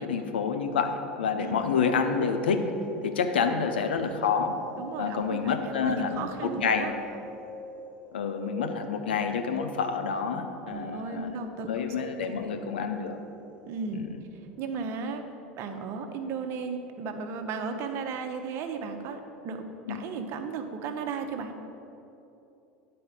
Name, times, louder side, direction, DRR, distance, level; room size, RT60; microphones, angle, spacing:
voice 1, 0.0-2.7 3.0-4.6 5.0-6.9 8.1-11.3 11.7-13.2 13.9-14.0 19.9-20.0, left 6 dB, 80° left, 6 dB, 0.6 m, -28 dB
sound 1, 1.8-14.6, right 2 dB, 15° right, 1.1 m, -48 dB
voice 2, 4.8-6.9 10.7-12.6 13.7-14.0 14.6-15.2 15.6-21.6, right 5 dB, 50° right, 6 dB, 0.7 m, -35 dB
9.7 x 4.2 x 5.1 m, 2.9 s
hypercardioid pair, 80°, 5 cm